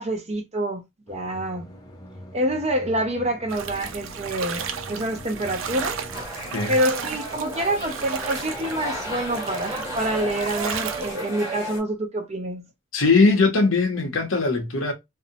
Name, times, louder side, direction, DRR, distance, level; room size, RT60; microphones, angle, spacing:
voice 1, 0.0-1.7 2.3-6.0 6.7-12.7, right 1 dB, 35° right, 0.6 m, -27 dB
sound 1, 1.1-6.3, equal, 20° left, 0.5 m, -42 dB
sound 2, 3.5-11.1, right 7 dB, 75° right, 0.4 m, -34 dB
sound 3, 6.1-11.8, equal, 15° right, 1.3 m, -33 dB
voice 2, 12.9-14.9, left 3 dB, 75° left, 0.7 m, -20 dB
2.7 x 2.0 x 2.6 m
head